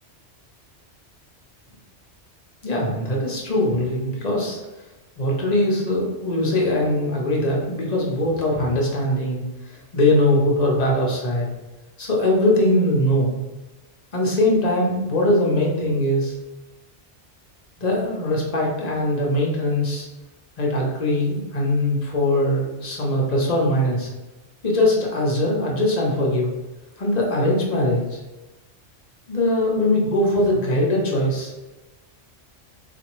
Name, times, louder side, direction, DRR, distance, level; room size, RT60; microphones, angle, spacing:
voice 1, 2.6-4.6 5.2-11.5 12.0-13.4 14.1-16.3 17.8-20.0 20.6-24.1 24.6-26.5 27.0-28.2 29.3-31.6, left 1 dB, 40° left, -3 dB, 0.8 m, -21 dB
4.1 x 2.5 x 3.0 m, 1.1 s
omnidirectional pair, 1.2 m